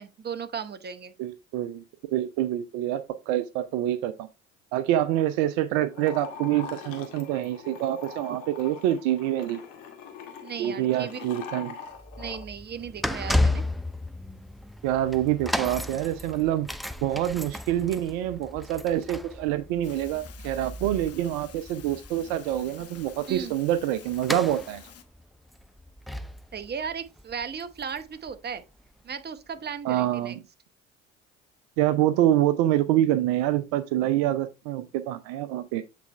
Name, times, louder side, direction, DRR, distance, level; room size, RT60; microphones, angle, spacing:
voice 1, 0.0-1.1 10.4-11.3 12.2-13.6 23.3-23.5 26.5-28.6 29.0-30.4, right 7 dB, 25° right, 1.0 m, -36 dB
voice 2, 1.2-1.8 2.1-4.3 4.7-9.6 10.6-11.8 14.8-16.7 17.0-24.8 29.8-30.4 31.8-35.8, right 12 dB, 65° right, 0.7 m, -26 dB
sound 1, 5.9-12.4, left 6 dB, 65° left, 2.0 m, -42 dB
sound 2, 11.9-28.9 29.6-29.7, left 1 dB, ahead, 0.5 m, -34 dB
sound 3, 19.8-25.0, left 9 dB, 40° left, 1.2 m, -50 dB
8.3 x 4.2 x 3.4 m
hypercardioid pair, 60°, 37 cm